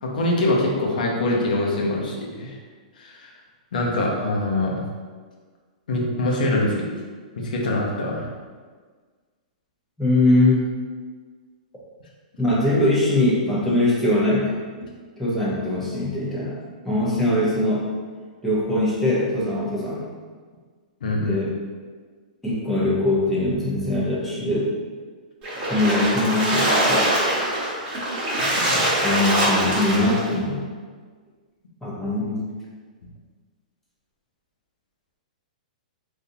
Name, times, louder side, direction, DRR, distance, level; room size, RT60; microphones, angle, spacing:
voice 1, 0.0-2.6 3.0-3.3 3.7-4.8 5.9-6.8 7.4-8.3 21.0-21.4 28.4-28.9, left 1 dB, 80° left, -2 dB, 0.8 m, -24 dB
voice 2, 10.0-10.6 12.4-14.6 15.2-16.6 16.8-17.9 18.4-20.0 21.2-21.6 22.4-24.7 25.7-27.1 29.0-30.7 31.8-32.5, left 1 dB, 5° left, -7 dB, 0.9 m, -22 dB
Splash splatter, 25.4-30.3, right 1 dB, 30° right, 1.3 m, -22 dB
4.0 x 2.6 x 2.7 m, 1.5 s
hypercardioid pair, 145°, 4 cm